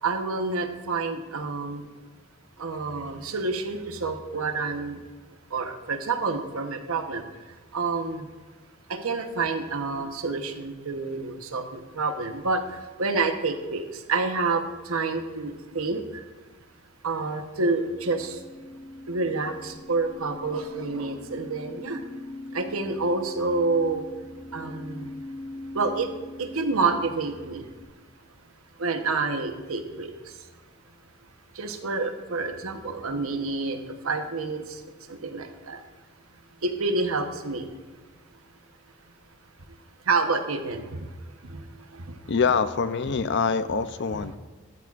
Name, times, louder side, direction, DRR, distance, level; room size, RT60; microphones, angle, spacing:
voice 1, 0.0-1.8 2.6-5.0 5.5-7.2 7.7-8.3 8.9-12.6 13.0-16.0 17.0-18.4 19.1-22.0 22.5-24.0 24.5-25.1 25.7-26.1 26.4-27.6 28.8-30.1 31.6-33.8 34.0-34.6 35.1-35.8 36.6-37.7 40.1-41.0 41.5-41.6, right 3 dB, 85° right, 6 dB, 1.1 m, -28 dB
sound 1, 17.7-27.9, left 2 dB, 20° left, 0.9 m, -42 dB
voice 2, 42.3-44.4, left 5 dB, 60° left, 12 dB, 0.6 m, -25 dB
13.0 x 12.0 x 2.5 m, 1.3 s
head